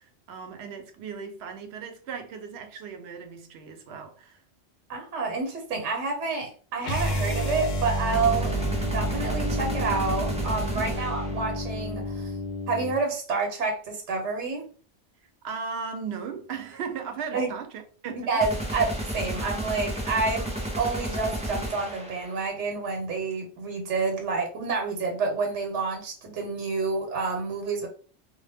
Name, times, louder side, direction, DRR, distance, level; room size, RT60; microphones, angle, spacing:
voice 1, 0.0-4.4 8.7-8.8 10.7-11.2 15.4-18.4, right 6 dB, 70° right, 0.8 m, -37 dB
voice 2, 4.9-8.6 8.9-12.3 12.7-14.6 17.3-17.5 18.2-27.9, right 4 dB, 90° right, 1.0 m, -29 dB
sound 1, 6.8-13.0, right 1 dB, 60° left, 0.5 m, -29 dB
sound 2, 8.1-11.5 18.4-22.5, right 1 dB, 10° right, 0.3 m, -33 dB
2.1 x 2.1 x 3.3 m
omnidirectional pair, 1.2 m